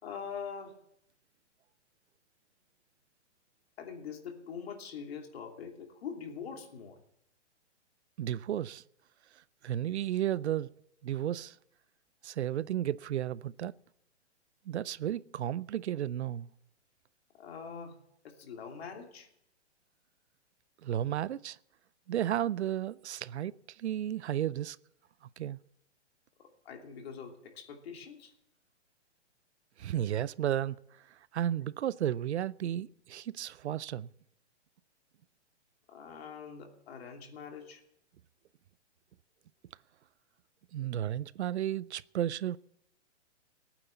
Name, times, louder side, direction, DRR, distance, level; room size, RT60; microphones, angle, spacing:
voice 1, 0.0-0.8 3.8-7.0 17.4-18.0 18.2-19.3 26.4-28.3 35.9-37.8, left 6 dB, 60° left, 2.9 m, -43 dB
voice 2, 8.2-8.8 9.6-10.7 11.0-11.6 12.2-13.7 14.7-16.5 20.8-21.6 22.1-24.8 25.4-25.6 29.8-30.8 31.3-34.1 40.7-42.6, right 11 dB, 70° right, 0.6 m, -33 dB
18.0 x 9.1 x 7.1 m
hypercardioid pair, 150°, 35 cm